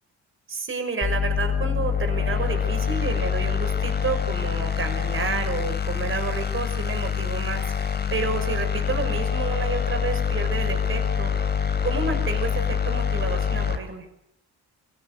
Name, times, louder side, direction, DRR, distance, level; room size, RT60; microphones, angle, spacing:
voice 1, 0.5-11.3 11.8-14.1, right 4 dB, 45° right, 6 dB, 5.7 m, -30 dB
sound 1, 1.0-13.8, left 7 dB, 35° left, 3.5 m, -25 dB
23.5 x 17.5 x 8.1 m, 0.72 s
cardioid pair, 90°, 30 cm